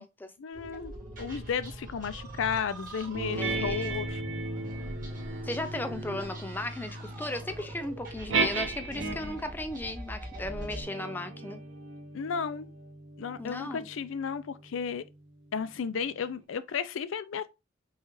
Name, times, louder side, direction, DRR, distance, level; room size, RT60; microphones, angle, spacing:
voice 1, 0.4-4.2 12.1-12.7 13.2-15.0 15.5-17.5, left 6 dB, 80° left, 0.4 m, -33 dB
sound 1, 0.5-10.8, right 1 dB, 40° right, 2.1 m, -43 dB
sound 2, 3.1-9.5 10.3-15.2, right 3 dB, 75° right, 0.9 m, -36 dB
voice 2, 3.4-3.9 5.4-11.6 13.4-13.9, left 1 dB, 10° left, 0.3 m, -36 dB
5.5 x 2.4 x 3.0 m
head